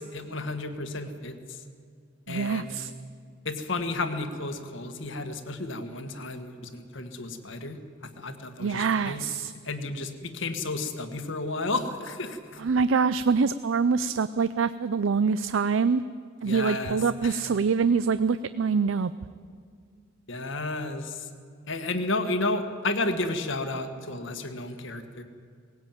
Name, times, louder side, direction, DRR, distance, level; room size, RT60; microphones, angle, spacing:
voice 1, 0.0-1.6 2.3-2.7 3.4-7.8 8.2-9.2 9.6-12.6 16.4-17.4 20.3-21.3 21.7-25.2, left 2 dB, 60° left, 7 dB, 1.6 m, -32 dB
voice 2, 2.3-2.9 8.6-9.5 12.6-16.0 16.4-19.1, right 5 dB, 65° right, 14 dB, 0.4 m, -25 dB
19.0 x 17.0 x 9.0 m, 2.3 s
head